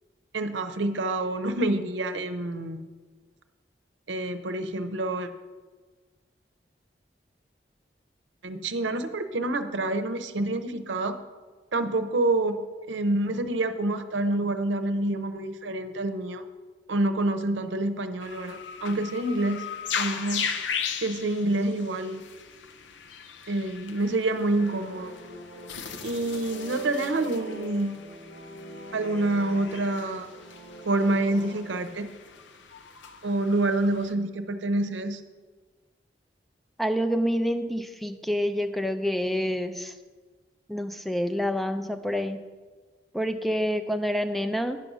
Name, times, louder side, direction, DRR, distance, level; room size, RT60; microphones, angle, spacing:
voice 1, 0.3-2.8 4.1-5.3 8.4-11.2 11.7-12.6 12.9-16.4 16.9-19.6 20.0-20.5 21.0-22.2 23.5-25.1 26.0-28.0 28.9-30.3 30.9-32.1 33.2-35.2, right 2 dB, 90° right, 8 dB, 0.7 m, -27 dB
sound 1, 18.2-34.1, left 7 dB, 85° left, 0.6 m, -38 dB
sound 2, 24.1-32.0, right 1 dB, 70° left, 2.8 m, -44 dB
voice 2, 36.8-39.9 40.7-42.4 43.1-44.8, equal, ahead, 8 dB, 0.4 m, -27 dB
10.0 x 5.4 x 6.0 m, 1.4 s
head